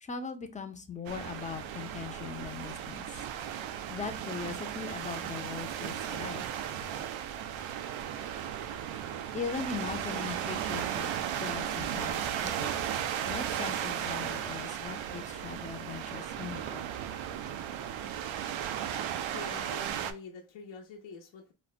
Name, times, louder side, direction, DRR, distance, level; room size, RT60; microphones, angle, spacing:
voice 1, 0.0-3.1 3.9-6.5 9.3-12.7 13.3-16.8, left 5 dB, 15° left, 0.4 m, -40 dB
sound 1, 1.1-20.1, right 9 dB, 80° right, 0.6 m, -35 dB
voice 2, 19.0-21.5, left 5 dB, 70° left, 0.8 m, -46 dB
4.1 x 2.1 x 2.3 m
cardioid pair, 140°, 46 cm